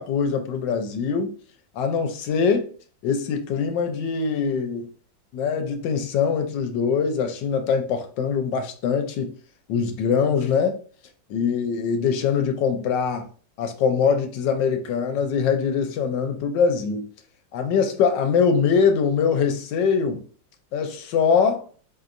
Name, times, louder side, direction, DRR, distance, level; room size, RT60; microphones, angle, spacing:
voice 1, 0.0-1.3 1.8-2.7 3.0-4.9 5.3-9.3 9.7-10.8 11.3-13.3 13.6-17.1 17.5-20.2 20.7-21.6, left 6 dB, 75° left, 1.2 m, -23 dB
4.6 x 2.8 x 2.5 m
omnidirectional pair, 2.1 m